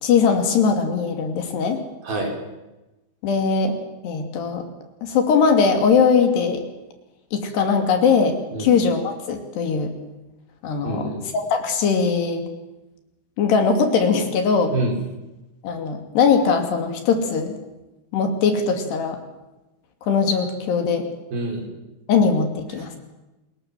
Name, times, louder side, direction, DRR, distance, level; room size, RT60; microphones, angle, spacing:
voice 1, 0.0-1.8 3.2-3.8 4.0-4.6 5.0-6.6 7.3-9.9 10.6-12.5 13.4-14.7 15.6-17.6 18.1-19.2 20.0-21.1 22.1-22.9, left 5 dB, 70° left, 6 dB, 4.6 m, -20 dB
voice 2, 2.0-2.4 8.5-8.7 10.8-11.2 14.7-15.0 21.3-21.7 22.7-22.8, right 2 dB, 55° right, 2 dB, 6.8 m, -26 dB
28.5 x 20.5 x 7.5 m, 1.0 s
omnidirectional pair, 5.1 m